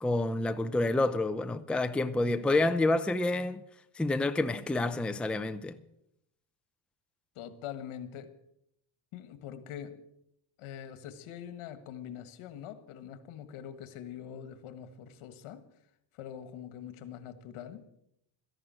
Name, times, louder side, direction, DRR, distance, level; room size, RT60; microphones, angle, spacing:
voice 1, 0.0-3.6 4.0-5.7, left 2 dB, ahead, 0.6 m, -28 dB
voice 2, 7.4-8.3 9.1-10.0 10.6-15.6 16.1-17.9, left 9 dB, 75° left, 1.7 m, -44 dB
14.0 x 11.0 x 7.6 m
cardioid pair, 120°, 49 cm